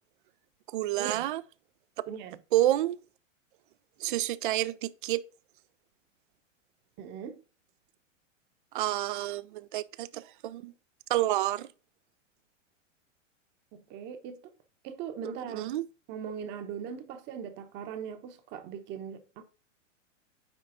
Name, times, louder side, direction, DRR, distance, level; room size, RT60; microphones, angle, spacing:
voice 1, 0.7-1.4 2.5-3.0 4.0-5.2 8.7-10.7 11.1-11.7 15.5-15.8, right 14 dB, 45° right, 0.4 m, -29 dB
voice 2, 2.1-2.4 7.0-7.4 13.7-14.5 14.8-15.7 16.1-19.4, right 7 dB, 30° right, 0.9 m, -40 dB
9.7 x 3.4 x 3.9 m
figure-of-eight pair, 100°, 38 cm